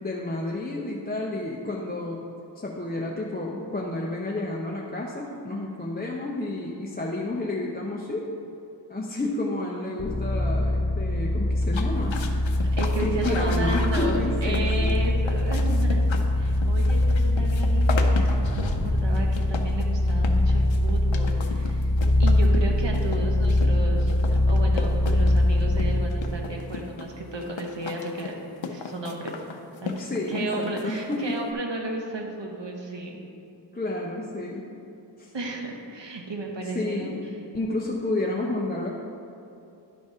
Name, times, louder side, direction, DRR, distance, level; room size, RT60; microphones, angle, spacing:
voice 1, 0.0-2.3 2.6-8.3 8.9-12.2 13.0-14.9 30.0-31.4 33.7-34.7 35.2-35.3 36.7-37.2 37.5-38.9, left 2 dB, 20° left, -2 dB, 0.7 m, -30 dB
sound 1, 10.0-26.1, left 1 dB, 55° left, 1.1 m, -23 dB
sound 2, 11.6-31.5, left 4 dB, 90° left, 0.7 m, -37 dB
voice 2, 12.7-16.0 16.4-21.9 22.2-28.3 28.6-29.3 29.8-33.2 35.3-37.2, right 2 dB, 70° right, 1 dB, 1.1 m, -33 dB
11.0 x 4.0 x 4.9 m, 2.7 s
wide cardioid pair, 60°, 44 cm